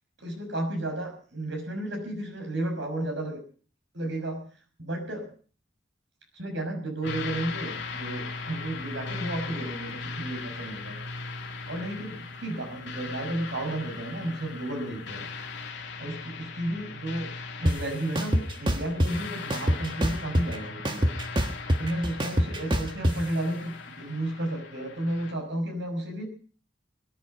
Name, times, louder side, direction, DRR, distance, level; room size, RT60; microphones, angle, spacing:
voice 1, 0.2-3.4 3.9-4.4 4.8-5.3 6.3-11.0 11.7-15.3 16.0-21.1 21.8-26.3, right 1 dB, 75° right, 4 dB, 6.0 m, -33 dB
sound 1, 7.0-25.3, left 4 dB, 70° left, 2.5 m, -39 dB
sound 2, 17.7-17.8 18.2-19.1 19.5-20.6 20.9-23.1, equal, 25° right, 1.5 m, -24 dB
22.0 x 11.0 x 5.4 m, 0.42 s
head